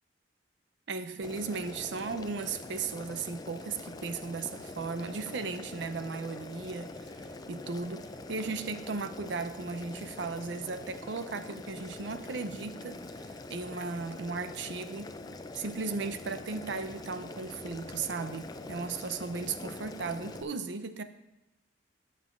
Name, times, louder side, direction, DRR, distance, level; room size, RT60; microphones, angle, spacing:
voice 1, 0.9-15.1 15.5-21.0, right 4 dB, 75° right, 10 dB, 0.5 m, -36 dB
Boiling, 1.2-20.4, left 2 dB, 20° left, 0.3 m, -44 dB
16.0 x 5.5 x 2.5 m, 0.97 s
head